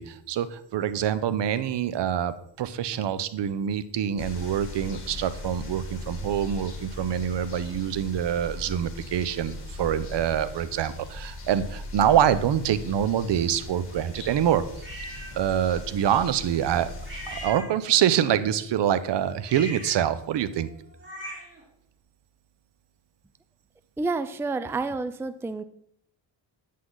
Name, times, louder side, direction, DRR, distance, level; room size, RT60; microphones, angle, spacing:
voice 1, 0.0-14.9 15.3-16.9 17.3-20.7, right 10 dB, 65° right, 14 dB, 0.8 m, -25 dB
sound 1, 4.2-17.5, left 2 dB, 50° left, 3.3 m, -39 dB
sound 2, 14.8-15.3 17.1-18.1 19.4-21.6, equal, 25° right, 3.8 m, -40 dB
voice 2, 24.0-25.6, right 3 dB, 5° right, 12 dB, 0.4 m, -29 dB
9.4 x 8.5 x 3.9 m, 0.69 s
cardioid pair, 100°, 46 cm